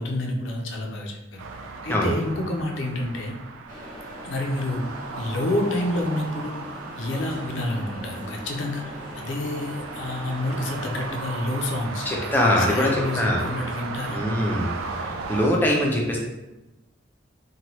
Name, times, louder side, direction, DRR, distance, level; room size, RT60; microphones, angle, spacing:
voice 1, 0.0-1.5 1.8-3.3 4.2-4.9 5.2-6.7 7.0-14.2, left 1 dB, 70° left, 1 dB, 0.5 m, -29 dB
sound 1, 1.4-15.5, right 4 dB, 85° right, 0.3 m, -36 dB
sound 2, 3.7-11.1, equal, 45° right, 0.7 m, -41 dB
voice 2, 12.1-13.4 14.1-14.7 15.3-16.2, left 1 dB, 10° left, -2 dB, 0.4 m, -22 dB
2.8 x 2.2 x 3.0 m, 1.0 s
head